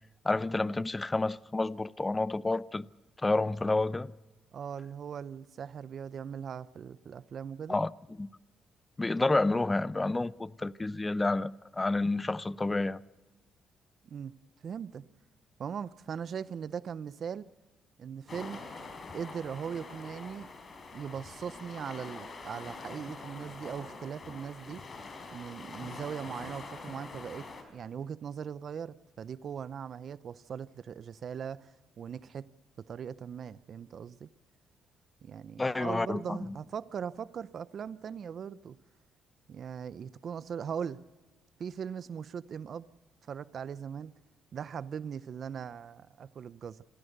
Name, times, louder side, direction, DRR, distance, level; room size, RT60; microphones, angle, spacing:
voice 1, 0.2-2.9 3.2-4.1 7.7-7.9 8.2-8.3 9.0-13.0 35.6-36.5, left 2 dB, 20° left, 0.6 m, -29 dB
voice 2, 4.5-7.8 14.0-14.4 14.6-15.0 15.6-17.5 18.0-18.6 19.1-20.5 20.9-24.8 25.3-32.5 32.9-34.3 35.2-38.8 39.5-41.0 41.6-42.9 43.3-44.1 44.5-46.8, right 7 dB, 55° right, 0.6 m, -40 dB
sound 1, 18.3-27.6, left 3 dB, 40° left, 4.5 m, -45 dB
27.5 x 15.5 x 6.6 m
cardioid pair, 90°, 0 cm